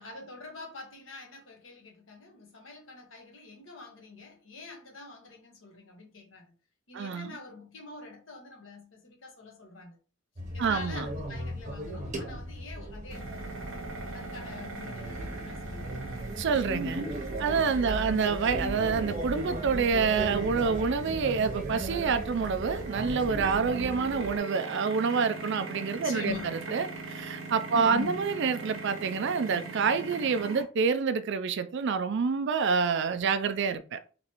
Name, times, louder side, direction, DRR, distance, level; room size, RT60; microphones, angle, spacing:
voice 1, 0.0-6.5 6.9-10.0 10.5-13.7 14.1-16.0 17.8-18.2 26.0-26.7 27.7-28.2, left 3 dB, 65° left, 1.3 m, -44 dB
voice 2, 6.9-7.4 10.6-11.1 16.4-17.0 17.4-26.3 26.7-34.0, right 5 dB, 60° right, 0.4 m, -27 dB
sound 1, 10.4-24.4, right 1 dB, 35° right, 0.8 m, -37 dB
sound 2, 13.1-30.6, right 4 dB, 80° right, 1.0 m, -41 dB
4.0 x 3.1 x 3.0 m
head